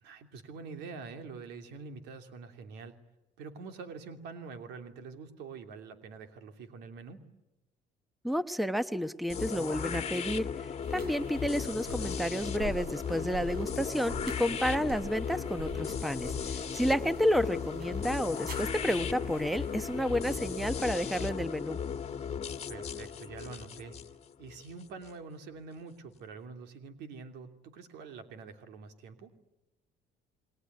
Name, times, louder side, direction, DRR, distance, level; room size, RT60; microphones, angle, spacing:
voice 1, 0.0-3.0 3.4-7.2 22.7-24.0 24.4-29.3, right 4 dB, 85° right, 7 dB, 3.0 m, -45 dB
voice 2, 8.2-21.8, equal, ahead, 12 dB, 1.0 m, -31 dB
sound 1, 9.3-25.1, left 7 dB, 40° left, 1.7 m, -36 dB
sound 2, 10.8-20.6, right 3 dB, 65° right, 5.8 m, -47 dB
28.5 x 21.0 x 9.5 m, 0.99 s
cardioid pair, 110°, 17 cm